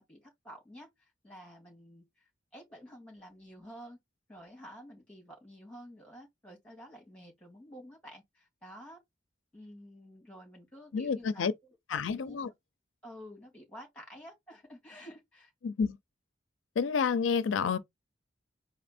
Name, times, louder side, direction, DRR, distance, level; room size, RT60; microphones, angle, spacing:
voice 1, 0.0-4.0 4.3-9.0 9.5-11.5 11.9-12.4 13.0-15.5, equal, 5° left, 2.3 m, -50 dB
voice 2, 10.9-11.5 11.9-12.5 15.6-16.0 16.8-17.8, left 5 dB, 80° left, 0.5 m, -29 dB
4.3 x 2.5 x 4.2 m
head